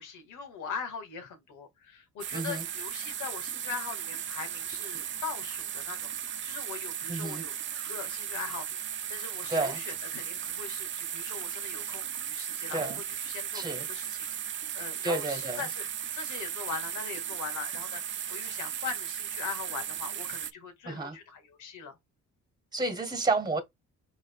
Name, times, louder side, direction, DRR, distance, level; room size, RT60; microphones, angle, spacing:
voice 1, 0.0-7.5 7.9-18.0 18.3-22.0, left 6 dB, 85° left, 1.9 m, -41 dB
sound 1, 2.2-20.5, right 9 dB, 40° right, 0.5 m, -36 dB
voice 2, 2.3-2.6 7.1-7.5 7.7-7.9 9.5-9.8 12.7-13.0 13.5-13.8 15.0-15.6 20.8-21.2 22.7-23.6, right 3 dB, 15° right, 1.4 m, -31 dB
4.9 x 3.9 x 2.3 m
cardioid pair, 90°, 30 cm